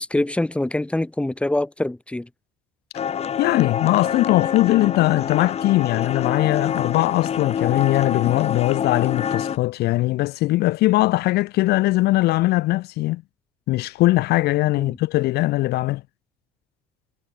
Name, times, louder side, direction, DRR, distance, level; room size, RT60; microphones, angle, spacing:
voice 1, 0.0-2.3 14.8-15.0, left 1 dB, 5° left, 1.1 m, -24 dB
sound 1, 2.9-9.6, left 8 dB, 40° left, 0.8 m, -26 dB
voice 2, 3.4-13.2 13.7-16.0, left 18 dB, 70° left, 0.4 m, -20 dB
cardioid pair, 110°, 17 cm